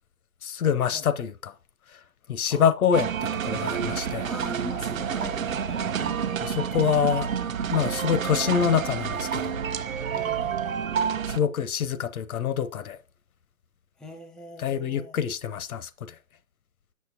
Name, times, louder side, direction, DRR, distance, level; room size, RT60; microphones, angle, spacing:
voice 1, 0.4-1.5 2.3-4.3 6.4-7.3 7.7-9.6 11.3-13.0 14.6-16.1, left 8 dB, 80° left, 0.7 m, -26 dB
sound 1, 2.9-11.4, right 7 dB, 70° right, 0.7 m, -29 dB
voice 2, 4.2-6.4 10.1-10.8 14.0-15.2, left 1 dB, ahead, 0.3 m, -41 dB
7.0 x 6.4 x 2.7 m
hypercardioid pair, 180°, 42 cm